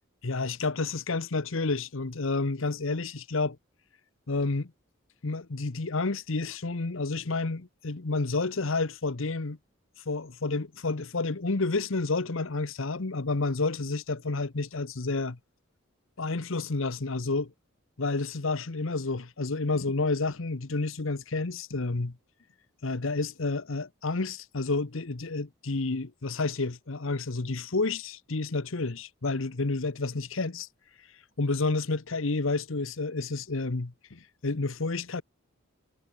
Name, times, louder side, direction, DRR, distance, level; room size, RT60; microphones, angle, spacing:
voice 1, 0.2-3.6 4.3-4.7 5.2-9.6 10.1-15.4 16.2-17.5 18.0-22.2 22.8-30.7 31.4-35.2, left 3 dB, 70° left, 1.0 m, -30 dB
head